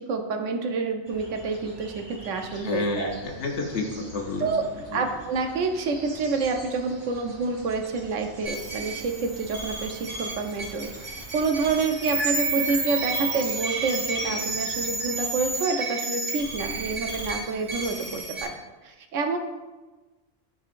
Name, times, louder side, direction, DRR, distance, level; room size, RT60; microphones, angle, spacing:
voice 1, 0.0-3.1 4.4-4.6 4.9-10.9 11.3-18.5 18.8-19.4, right 4 dB, 75° right, 4 dB, 1.0 m, -28 dB
sound 1, 1.0-15.5, right 1 dB, 25° right, 0.8 m, -46 dB
voice 2, 2.6-4.5 4.9-5.0, left 3 dB, 65° left, 2 dB, 1.1 m, -29 dB
sound 2, 8.5-18.4, right 3 dB, 45° right, 1.4 m, -31 dB
10.5 x 3.8 x 2.5 m, 1.2 s
omnidirectional pair, 1.3 m